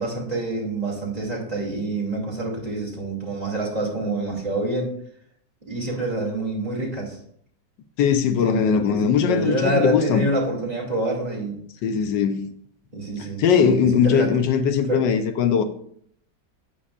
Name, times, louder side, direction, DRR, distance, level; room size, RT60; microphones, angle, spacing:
voice 1, 0.0-4.9 5.7-7.2 8.4-11.6 12.9-14.4 14.9-15.0, right 2 dB, 20° right, 2.4 m, -27 dB
voice 2, 8.0-10.3 11.8-12.5 13.4-15.6, left 7 dB, 90° left, 1.4 m, -20 dB
9.7 x 8.7 x 2.4 m
omnidirectional pair, 1.9 m